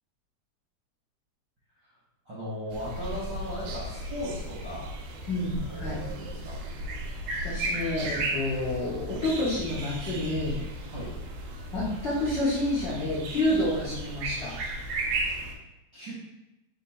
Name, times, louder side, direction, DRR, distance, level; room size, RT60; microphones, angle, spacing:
voice 1, 2.3-4.9 5.7-6.6 10.9-11.1 15.9-16.1, left 1 dB, 55° right, -10 dB, 1.2 m, -37 dB
sound 1, 2.7-15.5, right 2 dB, 80° right, 1.9 m, -35 dB
voice 2, 5.3-6.0 7.4-10.6 11.7-14.6, left 1 dB, 55° left, -10 dB, 1.3 m, -29 dB
4.5 x 2.7 x 4.2 m, 0.96 s
omnidirectional pair, 3.4 m